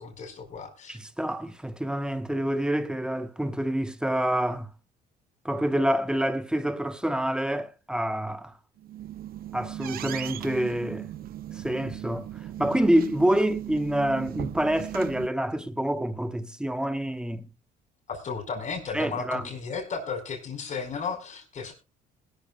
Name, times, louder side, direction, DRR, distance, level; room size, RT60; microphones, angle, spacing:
voice 1, 0.0-1.0 18.1-21.7, left 5 dB, 45° left, 4.6 m, -34 dB
voice 2, 0.9-4.7 5.4-8.5 9.5-11.1 11.5-12.3 12.6-17.5 18.9-19.4, right 1 dB, 5° right, 1.0 m, -27 dB
sound 1, 8.8-15.3, right 12 dB, 60° right, 0.8 m, -38 dB
20.5 x 12.5 x 2.2 m
cardioid pair, 110°, 17 cm